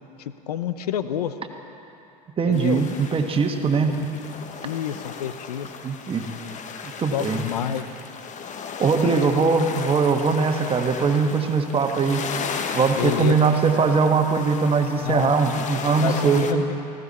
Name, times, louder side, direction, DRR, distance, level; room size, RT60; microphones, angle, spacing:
voice 1, 0.2-1.3 2.5-2.8 4.6-5.7 7.1-7.9 9.0-9.2 12.9-13.4 15.0-15.3 16.0-16.6, left 9 dB, 90° left, 12 dB, 0.7 m, -28 dB
voice 2, 2.4-4.0 5.8-6.2 6.8-7.4 8.8-12.2 12.7-16.6, right 5 dB, 30° right, 4 dB, 1.5 m, -21 dB
sound 1, 2.5-16.5, left 6 dB, 40° left, 1.1 m, -35 dB
19.0 x 15.5 x 4.2 m, 2.9 s
hypercardioid pair, 85°, 19 cm